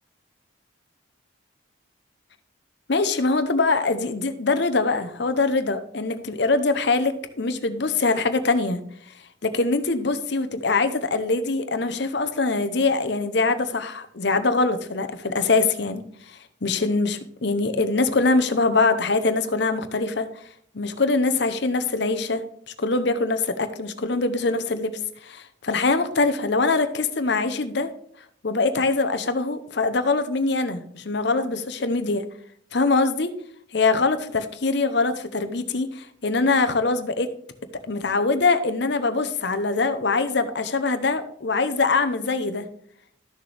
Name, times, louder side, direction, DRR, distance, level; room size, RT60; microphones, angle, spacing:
voice 1, 2.9-8.8 9.4-20.3 20.7-24.9 25.2-27.9 28.4-32.2 32.7-33.3 33.7-37.3 37.9-42.7, left 3 dB, 55° left, 10 dB, 0.8 m, -23 dB
13.5 x 6.5 x 3.4 m, 0.66 s
head